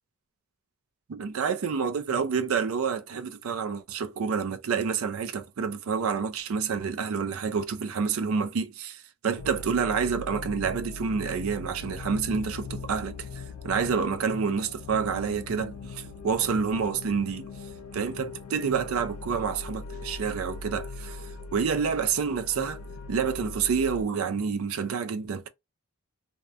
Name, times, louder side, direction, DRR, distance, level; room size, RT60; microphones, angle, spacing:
voice 1, 1.1-13.2 13.6-17.5 17.9-21.2 21.5-22.8 23.1-25.5, right 6 dB, 70° right, 0.4 m, -28 dB
sound 1, 9.4-24.0, left 4 dB, 80° left, 0.3 m, -40 dB
2.8 x 2.1 x 2.4 m
head